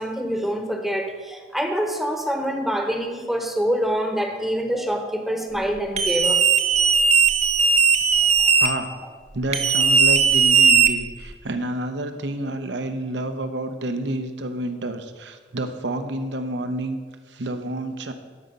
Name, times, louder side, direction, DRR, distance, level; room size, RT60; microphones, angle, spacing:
voice 1, 0.0-6.4, equal, ahead, 4 dB, 0.9 m, -25 dB
sound 1, 6.0-8.7 9.5-11.3, right 5 dB, 35° right, 0.7 m, -17 dB
voice 2, 9.3-17.0 17.3-18.1, right 1 dB, 75° right, 8 dB, 0.8 m, -29 dB
12.0 x 5.1 x 5.4 m, 1.5 s
head